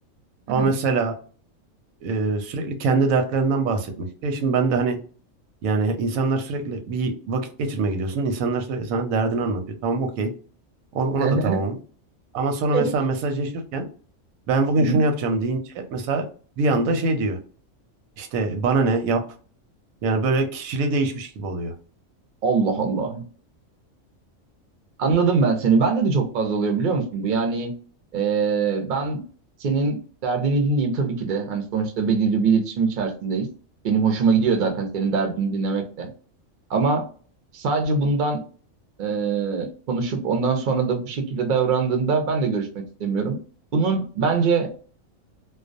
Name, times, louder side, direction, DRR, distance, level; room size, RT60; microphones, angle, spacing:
voice 1, 0.5-1.2 2.0-5.0 5.6-10.3 10.9-11.7 12.3-13.9 14.5-16.3 16.6-17.4 18.2-19.2 20.0-21.7, right 3 dB, 90° right, 5 dB, 1.0 m, -23 dB
voice 2, 11.2-11.6 12.7-12.8 14.8-15.0 22.4-23.2 25.0-27.7 28.1-29.2 29.6-33.5 33.8-36.1 36.7-37.1 37.5-38.4 39.0-43.4 43.7-44.7, right 4 dB, 55° right, 4 dB, 0.5 m, -22 dB
2.2 x 2.2 x 2.5 m, 0.41 s
omnidirectional pair, 1.4 m